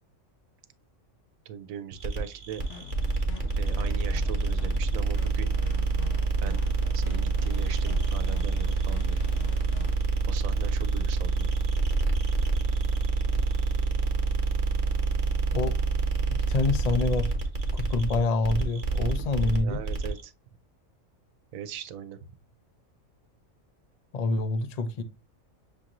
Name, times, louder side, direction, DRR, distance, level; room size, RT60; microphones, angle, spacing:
voice 1, 1.5-2.6 3.6-5.5 6.4-6.6 6.9-9.2 10.2-11.5 19.6-20.3 21.5-22.2, right 9 dB, 85° right, 1.0 m, -39 dB
sound 1, 2.0-20.2, right 4 dB, 35° right, 1.0 m, -27 dB
sound 2, 2.6-9.9, left 5 dB, 70° left, 1.0 m, -44 dB
voice 2, 16.3-17.3 17.7-19.8 24.1-25.0, left 3 dB, 50° left, 0.5 m, -27 dB
6.4 x 2.5 x 2.9 m
omnidirectional pair, 1.4 m